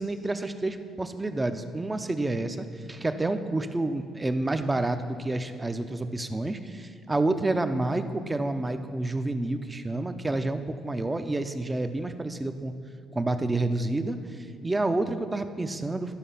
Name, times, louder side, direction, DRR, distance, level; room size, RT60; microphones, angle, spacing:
voice 1, 0.0-12.7 13.1-16.1, right 2 dB, 20° right, 9 dB, 0.7 m, -29 dB
11.5 x 4.9 x 5.7 m, 2.4 s
hypercardioid pair, 55°, 0 cm